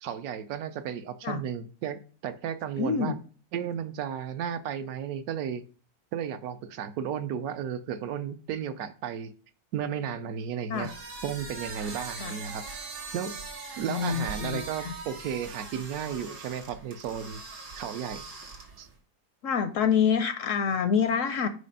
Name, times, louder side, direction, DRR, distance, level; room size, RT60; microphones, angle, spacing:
voice 1, 0.0-3.1 3.5-5.6 6.1-9.3 9.7-10.9 11.2-12.6 13.1-13.3 13.8-17.4 17.7-18.2 18.8-18.9, right 8 dB, 70° right, 10 dB, 1.0 m, -34 dB
voice 2, 2.8-3.2 10.7-10.9 12.2-12.3 13.9-14.9 19.4-21.5, left 7 dB, 70° left, 10 dB, 0.8 m, -27 dB
sound 1, 10.7-18.9, right 4 dB, 90° right, 2.0 m, -41 dB
5.0 x 4.9 x 5.3 m, 0.40 s
omnidirectional pair, 1.7 m